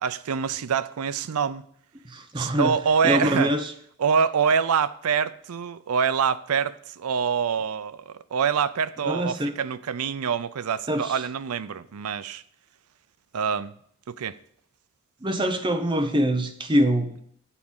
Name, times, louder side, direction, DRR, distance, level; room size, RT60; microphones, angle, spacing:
voice 1, 0.0-1.6 2.4-3.5 4.0-12.4 13.3-13.7 14.1-14.4, right 6 dB, 90° right, 0.5 m, -25 dB
voice 2, 2.1-2.7 3.0-3.7 9.1-9.5 10.9-11.1 15.2-17.2, equal, 20° right, 0.8 m, -24 dB
8.3 x 4.8 x 7.1 m
head